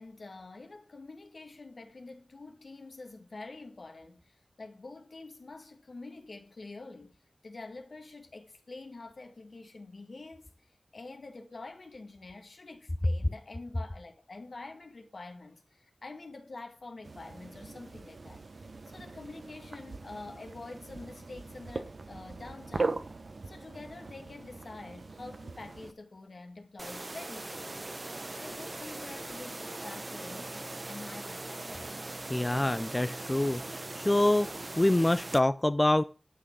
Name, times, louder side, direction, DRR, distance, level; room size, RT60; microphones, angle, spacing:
voice 1, 0.0-7.2 7.4-10.5 10.9-23.0 23.5-27.9 28.4-31.9, left 3 dB, 70° left, 2.0 m, -47 dB
sound 1, 17.0-25.9, right 3 dB, 70° right, 1.2 m, -40 dB
sound 2, 26.8-35.4, right 2 dB, 45° right, 0.9 m, -40 dB
voice 2, 32.3-34.5 34.8-36.0, left 1 dB, 25° left, 0.5 m, -26 dB
11.0 x 6.3 x 6.1 m
wide cardioid pair, 55°, 0 cm